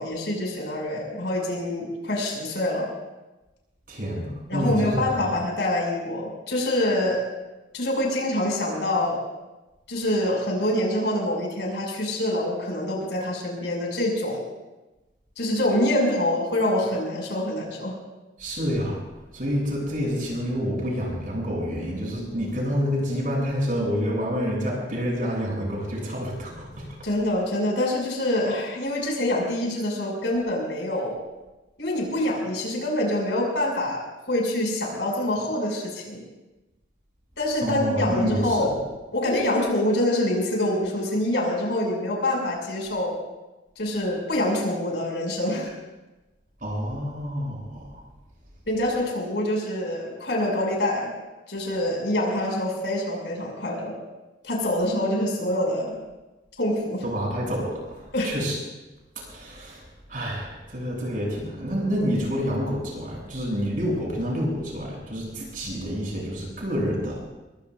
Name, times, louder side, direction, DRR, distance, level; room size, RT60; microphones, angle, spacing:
voice 1, 0.0-2.9 4.5-7.2 7.7-9.2 9.9-14.5 15.4-18.0 27.0-31.2 31.8-36.2 37.4-38.7 39.1-43.2 43.8-45.7 48.7-51.1 51.5-54.0 54.4-55.9 56.6-57.0 58.1-58.3, left 1 dB, 75° left, -1 dB, 6.2 m, -25 dB
voice 2, 3.9-5.3 18.4-19.0 19.3-26.9 37.6-38.7 46.6-48.0 57.0-58.6 59.3-59.8 60.1-67.3, equal, 50° right, -3 dB, 7.4 m, -28 dB
25.0 x 22.0 x 2.5 m, 1.1 s
head